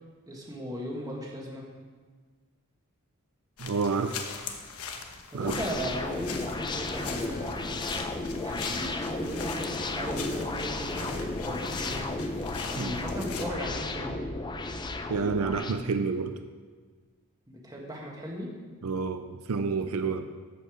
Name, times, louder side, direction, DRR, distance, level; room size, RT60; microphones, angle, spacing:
voice 1, 0.3-1.6 5.3-7.6 8.4-12.3 12.7-14.3 17.5-18.5 20.0-20.1, equal, 15° right, -2 dB, 1.6 m, -37 dB
sound 1, 3.6-13.5, left 6 dB, 90° left, 1.0 m, -41 dB
voice 2, 3.6-4.2 5.3-5.5 12.8-13.0 15.1-16.3 18.8-20.3, right 4 dB, 75° right, 8 dB, 0.5 m, -29 dB
sound 2, 5.5-15.7, left 2 dB, 20° left, 0.5 m, -33 dB
13.5 x 5.4 x 5.0 m, 1.5 s
head